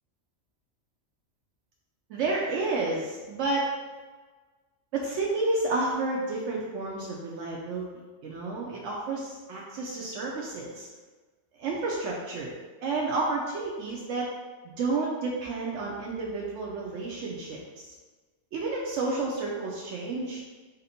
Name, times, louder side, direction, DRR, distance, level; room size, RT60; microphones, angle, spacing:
voice 1, 2.1-3.7 4.9-7.9 8.2-10.9 11.6-12.6 12.8-14.3 14.8-17.9 18.5-20.4, right 3 dB, 80° right, -3 dB, 1.0 m, -30 dB
4.2 x 2.6 x 4.2 m, 1.3 s
omnidirectional pair, 1.3 m